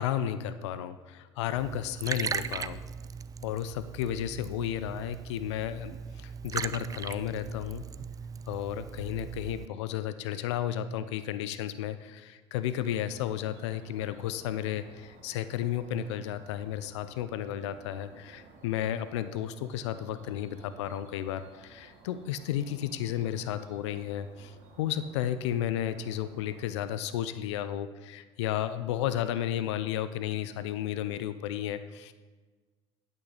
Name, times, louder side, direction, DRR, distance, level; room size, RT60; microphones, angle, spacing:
voice 1, 0.0-2.8 3.4-7.8 8.5-32.1, left 11 dB, 80° left, 12 dB, 0.4 m, -33 dB
Liquid, 1.6-9.7, right 6 dB, 25° right, 0.3 m, -38 dB
sound 1, 12.9-26.7, right 3 dB, 60° right, 1.4 m, -56 dB
8.9 x 8.2 x 4.0 m, 1.3 s
hypercardioid pair, 65°, 15 cm